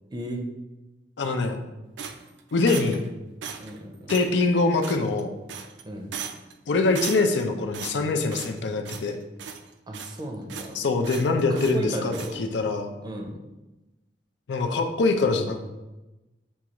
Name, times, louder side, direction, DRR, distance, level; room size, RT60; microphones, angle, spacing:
voice 1, 0.1-0.4 3.6-4.1 5.8-6.1 9.9-10.8 11.5-12.5 13.0-13.4, right 1 dB, 25° right, 2 dB, 0.5 m, -34 dB
voice 2, 1.2-1.6 2.5-3.0 4.1-5.4 6.7-9.2 10.7-12.9 14.5-15.7, left 3 dB, 85° left, 5 dB, 0.5 m, -24 dB
sound 1, 2.0-3.1 3.4-3.8 4.1-4.3 4.8-5.2 5.5-5.8 6.1-6.5 6.9-7.4 7.7-8.6 8.8-9.1 9.4-10.2 10.5-10.7 11.0-11.8 12.1-12.4, right 7 dB, 80° right, 0.4 m, -37 dB
6.2 x 2.3 x 2.9 m, 1.0 s
head